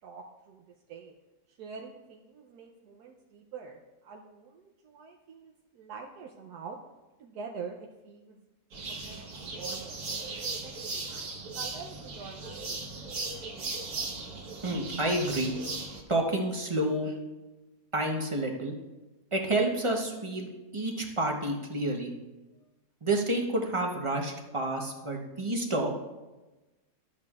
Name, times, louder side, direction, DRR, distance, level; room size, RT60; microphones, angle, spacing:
voice 1, 0.0-1.1 1.5-6.8 7.2-8.5 8.9-10.0 10.6-12.9, right 5 dB, 80° right, 1 dB, 1.2 m, -46 dB
sound 1, 8.7-16.0, right 3 dB, 65° right, 1.6 m, -37 dB
voice 2, 14.6-15.5 16.1-17.2 17.9-18.7 19.3-22.1 23.0-25.9, right 1 dB, 25° right, 2 dB, 0.7 m, -29 dB
12.5 x 8.4 x 2.4 m, 1.1 s
omnidirectional pair, 1.7 m